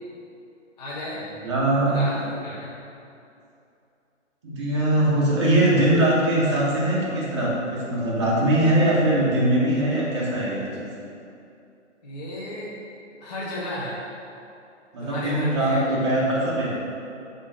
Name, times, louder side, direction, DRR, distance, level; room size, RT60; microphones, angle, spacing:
voice 1, 0.8-1.2 1.8-2.7 12.0-12.7 13.2-14.0 15.0-16.1, left 1 dB, 35° left, -7 dB, 0.5 m, -33 dB
voice 2, 1.4-2.0 4.4-10.9 14.9-16.7, right 1 dB, 25° right, -6 dB, 0.6 m, -21 dB
3.7 x 2.5 x 3.6 m, 2.6 s
hypercardioid pair, 145°, 38 cm